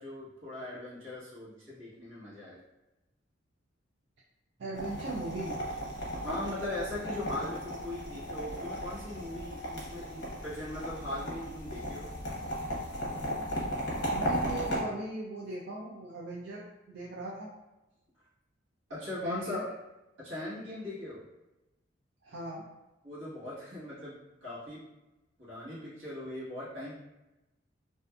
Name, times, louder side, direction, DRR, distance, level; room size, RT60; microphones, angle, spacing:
voice 1, 0.0-2.6 6.2-12.1 18.9-19.7 20.2-21.3 23.0-24.9 25.4-27.0, left 1 dB, 85° right, -8 dB, 1.3 m, -39 dB
voice 2, 4.6-5.6 14.1-17.5 19.2-19.6 22.2-22.6, right 2 dB, 65° right, -5 dB, 0.4 m, -38 dB
sound 1, 4.7-14.8, equal, 65° left, 0.8 m, -36 dB
2.5 x 2.4 x 2.3 m, 1.0 s
head